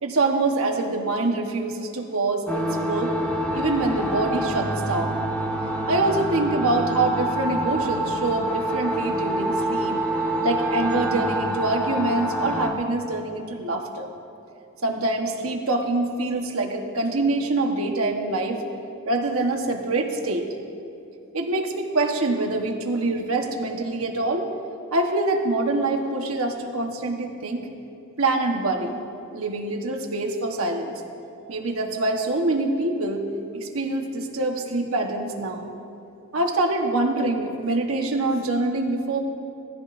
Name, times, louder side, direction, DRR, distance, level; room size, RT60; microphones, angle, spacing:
voice 1, 0.0-3.1 3.5-5.2 5.9-10.0 10.4-14.1 14.8-18.6 19.1-20.5 21.3-24.5 24.9-27.7 28.2-29.0 29.3-31.0 31.5-35.7 36.3-39.2, right 2 dB, 70° right, 3 dB, 1.2 m, -25 dB
sound 1, 2.5-12.7, right 1 dB, 5° left, 1.2 m, -26 dB
18.5 x 14.0 x 2.6 m, 2.7 s
head